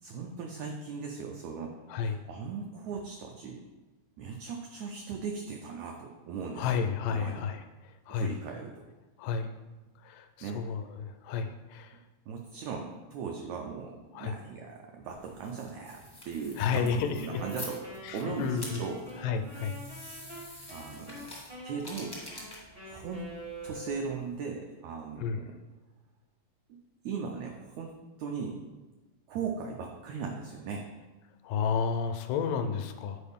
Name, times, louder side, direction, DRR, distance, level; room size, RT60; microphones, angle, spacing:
voice 1, 0.0-3.6 4.2-6.8 7.1-7.4 8.1-8.9 10.4-10.6 11.9-12.0 12.3-17.8 18.1-19.0 20.7-21.3 21.6-22.2 22.8-23.2 23.6-25.6 26.7-26.8 27.0-27.9 28.2-28.6 29.3-30.8, right 5 dB, 85° right, 2 dB, 1.6 m, -38 dB
voice 2, 6.6-7.6 8.1-8.3 9.2-9.5 10.0-12.0 14.1-14.3 16.6-17.4 18.0-18.8 19.2-19.8 25.2-25.4 31.4-33.2, left 6 dB, 80° left, 7 dB, 2.1 m, -31 dB
sound 1, 15.1-24.3, left 1 dB, 30° left, 0.4 m, -47 dB
Wind instrument woodwind instrument, 17.2-24.2, right 1 dB, 60° right, 0.5 m, -45 dB
8.2 x 4.7 x 3.5 m, 1.2 s
omnidirectional pair, 3.9 m